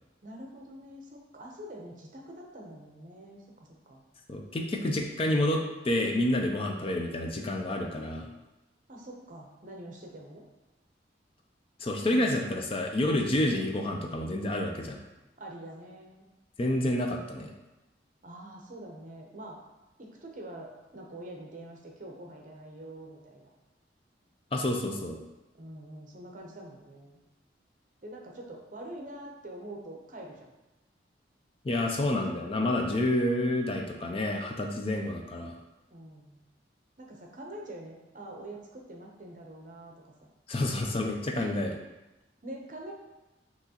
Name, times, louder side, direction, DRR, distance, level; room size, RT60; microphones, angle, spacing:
voice 1, 0.2-4.0 8.9-10.4 12.0-12.4 15.4-16.3 18.2-19.6 20.0-23.5 25.5-27.2 28.0-30.5 35.9-36.4 37.0-40.1 41.3-41.5 42.4-42.9, right 1 dB, 45° right, 0 dB, 0.7 m, -45 dB
voice 2, 4.3-8.3 11.8-15.0 16.6-17.5 24.5-25.2 31.6-35.5 40.5-41.7, left 1 dB, 30° left, 2 dB, 0.4 m, -29 dB
5.7 x 3.0 x 2.9 m, 1.0 s
head